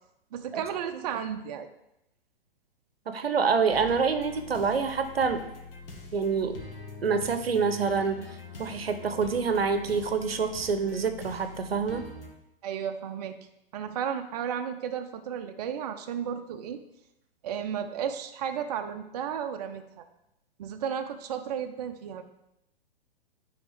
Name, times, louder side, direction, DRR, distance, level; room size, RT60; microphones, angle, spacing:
voice 1, 0.3-1.7 12.6-13.4 13.7-16.8 17.4-20.1 20.6-22.2, right 8 dB, 45° right, 6 dB, 0.4 m, -33 dB
voice 2, 3.1-5.4 6.1-6.6 7.0-8.3 8.6-12.0, right 5 dB, 80° right, 9 dB, 0.7 m, -26 dB
sound 1, 3.7-12.3, left 3 dB, 70° left, 1.4 m, -44 dB
9.2 x 3.5 x 3.4 m, 0.85 s
figure-of-eight pair, 115°, 29 cm